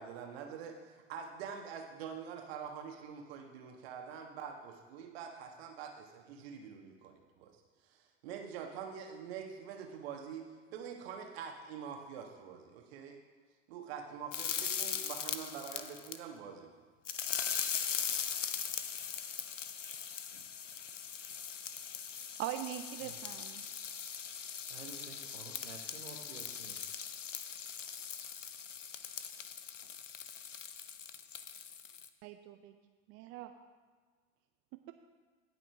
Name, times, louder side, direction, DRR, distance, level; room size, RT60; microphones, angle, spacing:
voice 1, 0.0-10.4 10.7-13.2 13.7-16.7, right 7 dB, 55° right, 2 dB, 1.5 m, -45 dB
sound 1, 14.3-16.2 17.1-32.1, left 7 dB, 80° left, 0.6 m, -40 dB
voice 2, 22.4-23.7 32.2-32.7 33.1-33.5 34.7-34.9, right 13 dB, 35° right, 7 dB, 0.5 m, -42 dB
voice 3, 24.7-26.9, right 5 dB, 75° right, 3 dB, 1.3 m, -51 dB
17.5 x 5.9 x 3.5 m, 1.5 s
figure-of-eight pair, 75°, 36 cm